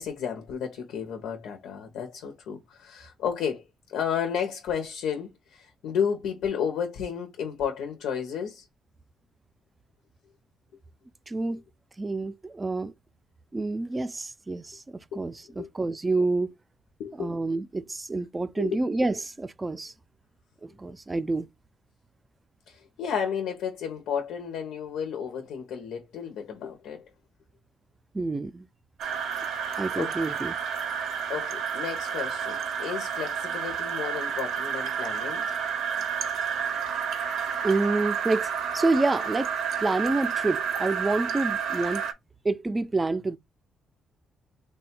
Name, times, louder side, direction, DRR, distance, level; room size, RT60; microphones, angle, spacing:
voice 1, 0.0-3.6 3.9-8.6 15.1-15.2 15.6-15.7 17.0-17.3 18.6-18.8 22.7-27.1 30.0-30.1 31.3-35.5, left 7 dB, 90° left, 0.7 m, -32 dB
voice 2, 11.3-11.6 12.0-12.9 13.5-16.5 17.2-19.9 20.6-21.5 28.1-28.7 29.8-30.6 37.6-39.5 39.8-42.0 42.4-43.4, right 3 dB, 20° right, 0.4 m, -28 dB
sound 1, 29.0-42.1, right 7 dB, 75° right, 0.6 m, -30 dB
3.3 x 2.3 x 4.3 m
cardioid pair, 90°, 0 cm